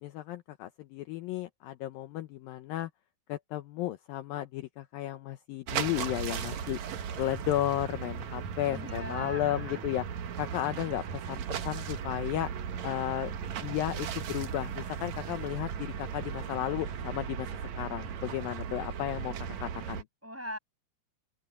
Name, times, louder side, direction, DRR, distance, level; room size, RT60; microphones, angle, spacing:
voice 1, 0.0-2.9 3.3-6.8 7.2-10.1 10.4-12.5 12.8-13.3 13.6-17.5 17.8-20.1, left 14 dB, 75° left, 2.4 m, -34 dB
sound 1, 5.7-20.0, right 8 dB, 60° right, 2.1 m, -37 dB
voice 2, 8.7-9.8 20.2-20.6, equal, 5° right, 7.0 m, -40 dB
open air
omnidirectional pair, 4.6 m